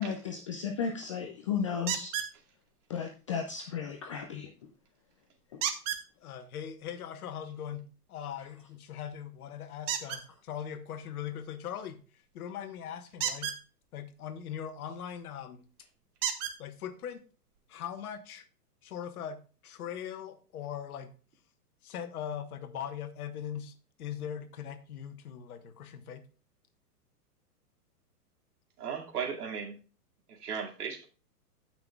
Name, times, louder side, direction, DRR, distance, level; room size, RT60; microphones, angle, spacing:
voice 1, 0.0-2.1 2.9-4.5 5.5-5.6, left 6 dB, 25° left, 4 dB, 0.3 m, -34 dB
sound 1, 1.9-2.3 5.6-6.0 9.9-10.2 13.1-13.6 15.2-15.3 16.2-16.6 17.6-17.7 18.1-18.2, right 9 dB, 30° right, 1.1 m, -32 dB
voice 2, 6.2-12.0 12.3-13.5 13.9-15.6 16.6-17.2 17.7-18.5 18.8-21.1 21.8-26.2, left 9 dB, 65° left, 9 dB, 1.4 m, -40 dB
voice 3, 28.8-29.8 30.3-31.1, right 7 dB, 70° right, 1 dB, 2.4 m, -36 dB
15.5 x 5.9 x 2.3 m, 0.36 s
hypercardioid pair, 130°, 48 cm